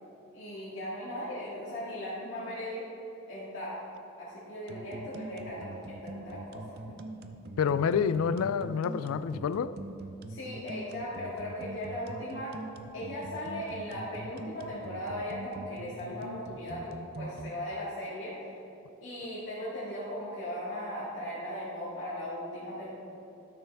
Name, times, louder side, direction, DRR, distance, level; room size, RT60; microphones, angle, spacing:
voice 1, 0.3-2.8 3.3-3.8 4.2-7.0 10.3-12.5 12.9-18.6 19.0-22.9, left 1 dB, 60° left, -11 dB, 2.1 m, -38 dB
sound 1, 4.7-17.5, right 2 dB, 45° right, 0.5 m, -43 dB
voice 2, 7.6-9.8, left 6 dB, 80° left, 16 dB, 0.3 m, -28 dB
12.5 x 6.8 x 3.5 m, 2.9 s
head